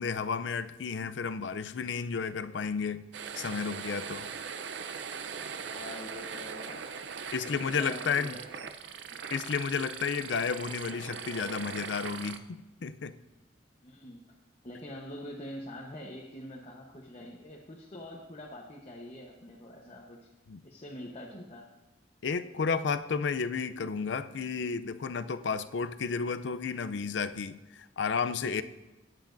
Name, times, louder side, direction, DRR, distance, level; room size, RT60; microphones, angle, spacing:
voice 1, 0.0-3.0 3.4-4.3 7.3-8.4 9.3-13.1 20.5-20.6 22.2-28.6, left 5 dB, 75° left, 12 dB, 0.5 m, -32 dB
sound 1, 3.1-12.4, right 6 dB, 70° right, 0.5 m, -40 dB
voice 2, 5.6-6.9 7.4-8.4 13.8-14.2 14.6-20.3 20.6-21.7, left 1 dB, 35° left, -3 dB, 1.0 m, -44 dB
16.0 x 9.7 x 2.6 m, 1.1 s
head